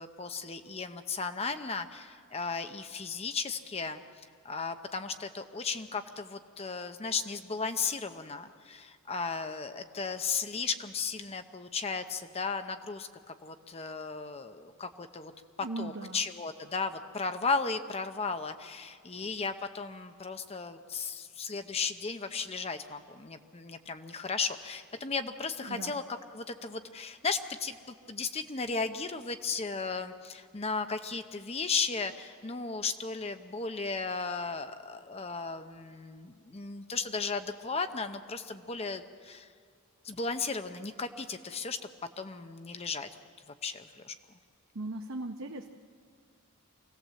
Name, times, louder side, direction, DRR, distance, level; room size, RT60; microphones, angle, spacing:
voice 1, 0.0-4.0 4.4-15.3 15.8-39.5 40.0-41.8 42.2-43.1 43.6-44.1, left 4 dB, 30° left, 8 dB, 0.7 m, -35 dB
voice 2, 15.6-16.2 25.6-25.9 44.7-45.7, right 2 dB, 65° right, 4 dB, 0.8 m, -38 dB
25.0 x 17.5 x 7.5 m, 2.2 s
head